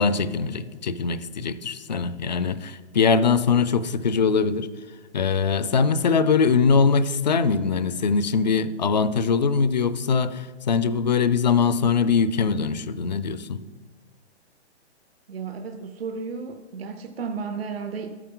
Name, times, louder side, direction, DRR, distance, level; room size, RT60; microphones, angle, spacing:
voice 1, 0.0-4.7 5.1-13.6, left 5 dB, 40° left, 0.4 m, -22 dB
voice 2, 15.3-18.2, right 5 dB, 60° right, 0.8 m, -33 dB
12.5 x 9.2 x 3.8 m
hypercardioid pair, 175°, 33 cm